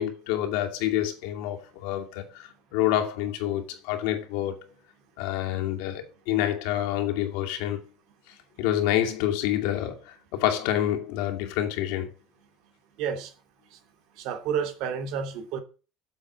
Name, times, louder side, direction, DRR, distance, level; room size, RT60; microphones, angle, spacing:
voice 1, 0.0-4.7 5.2-7.9 8.3-12.1, left 12 dB, 90° left, 2.5 m, -28 dB
voice 2, 13.0-13.3 14.2-15.6, right 7 dB, 60° right, 2.4 m, -30 dB
8.4 x 7.6 x 8.5 m
cardioid pair, 175°, 0 cm